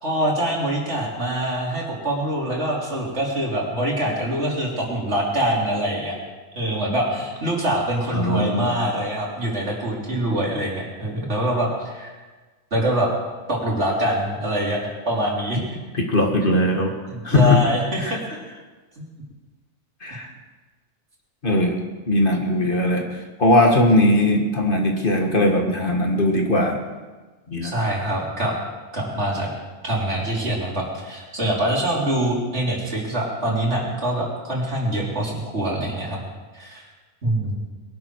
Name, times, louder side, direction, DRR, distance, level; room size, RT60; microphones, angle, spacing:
voice 1, 0.0-6.2 6.6-12.1 12.7-13.1 13.5-15.6 16.4-16.6 17.1-18.2 19.0-19.1 27.6-28.6 28.9-29.5 29.8-36.2 36.5-36.8 37.2-37.5, right 1 dB, 65° right, -3 dB, 3.7 m, -24 dB
voice 2, 8.1-8.7 15.9-16.9 17.2-17.6 18.0-18.2 20.0-20.3 21.4-23.1 23.4-26.8 27.5-27.8, left 1 dB, 45° left, 2 dB, 1.9 m, -19 dB
21.5 x 12.0 x 4.7 m, 1.3 s
omnidirectional pair, 1.3 m